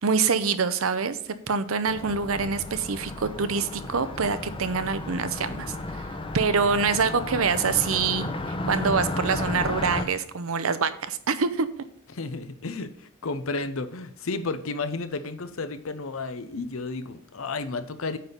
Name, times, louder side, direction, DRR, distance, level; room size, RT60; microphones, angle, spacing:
voice 1, 0.0-6.0 6.3-8.3 8.7-11.7, right 5 dB, 80° right, 12 dB, 0.7 m, -25 dB
Car passing by, 1.9-10.0, left 2 dB, 25° left, 0.8 m, -33 dB
voice 2, 12.1-18.2, left 3 dB, 75° left, 11 dB, 0.8 m, -32 dB
9.3 x 4.1 x 6.8 m, 0.64 s
head